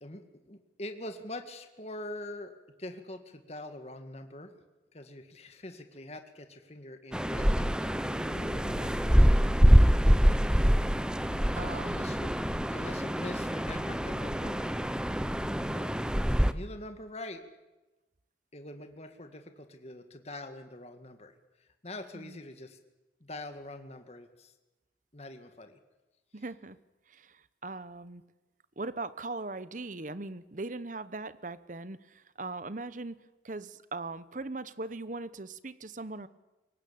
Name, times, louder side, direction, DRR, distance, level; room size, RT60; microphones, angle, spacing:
voice 1, 0.0-2.5 2.8-4.5 4.9-9.1 11.5-12.3 12.7-14.6 15.6-17.4 18.5-21.3 21.6-22.8 23.2-24.5 25.1-25.8, left 1 dB, 35° left, 7 dB, 1.9 m, -44 dB
sound 1, 7.1-16.5, equal, 5° right, 0.7 m, -25 dB
voice 2, 11.3-12.1 22.1-22.4 26.3-26.8 27.1-28.2 28.8-36.3, right 3 dB, 45° right, 16 dB, 0.9 m, -40 dB
23.5 x 19.0 x 8.7 m, 1.1 s
head